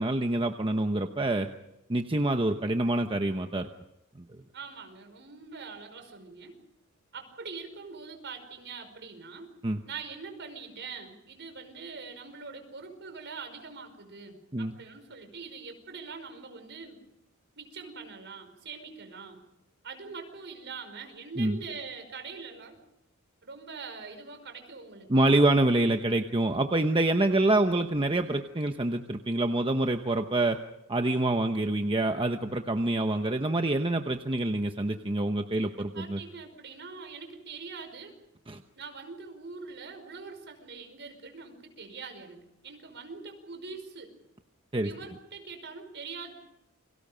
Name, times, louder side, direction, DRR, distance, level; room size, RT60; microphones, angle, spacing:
voice 1, 0.0-1.5 1.9-3.7 9.6-9.8 14.5-14.7 21.4-21.6 25.1-30.6 30.9-36.2 38.5-38.6 44.7-44.9, right 2 dB, 25° right, 6 dB, 1.0 m, -26 dB
voice 2, 4.5-6.5 7.1-9.5 9.9-17.0 17.6-19.4 19.8-22.8 23.4-25.4 35.6-38.1 38.8-44.1 44.8-46.3, right 4 dB, 55° right, 6 dB, 5.5 m, -43 dB
29.5 x 24.5 x 5.2 m, 0.88 s
head